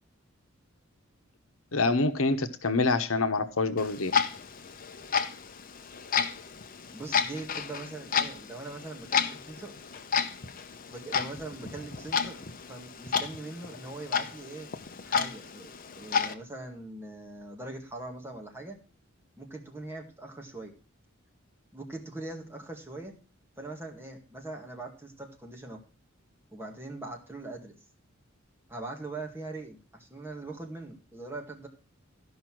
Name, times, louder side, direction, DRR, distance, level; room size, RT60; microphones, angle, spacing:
voice 1, 1.7-4.1, left 3 dB, 85° left, 9 dB, 1.0 m, -26 dB
Clock, 3.8-16.3, left 6 dB, 45° left, 0.8 m, -32 dB
voice 2, 6.9-9.7 10.9-14.7 15.0-18.8 19.4-20.7 21.7-23.1 23.6-25.8 26.5-27.8 28.7-31.7, right 2 dB, 10° right, 0 dB, 2.0 m, -41 dB
13.5 x 5.6 x 6.0 m, 0.35 s
head